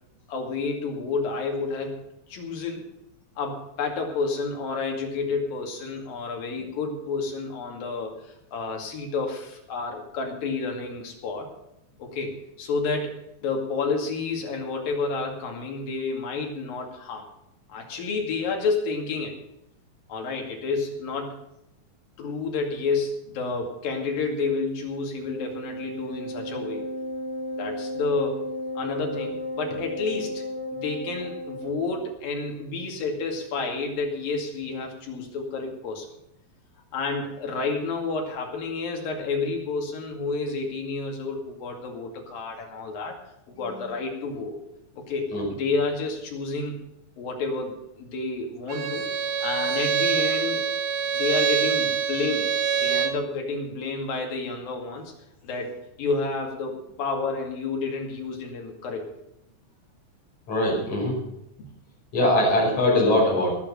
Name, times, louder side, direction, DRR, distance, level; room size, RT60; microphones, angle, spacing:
voice 1, 0.3-2.0 2.3-2.9 3.4-11.5 12.0-17.3 17.7-19.4 20.1-21.4 22.2-26.9 27.6-28.4 28.8-30.4 30.7-36.1 36.9-43.2 43.5-44.6 45.0-46.8 47.2-50.7 51.1-52.5 52.8-55.1 55.4-55.7 56.0-59.1, left 4 dB, 90° left, 2 dB, 4.1 m, -30 dB
Wind instrument woodwind instrument, 25.1-32.1, equal, 55° right, 2.9 m, -34 dB
Bowed string instrument, 48.7-53.2, right 7 dB, 70° right, 2.6 m, -25 dB
voice 2, 60.5-61.2 62.1-63.6, left 1 dB, 55° left, -3 dB, 7.2 m, -21 dB
19.0 x 7.5 x 6.7 m, 0.81 s
omnidirectional pair, 3.9 m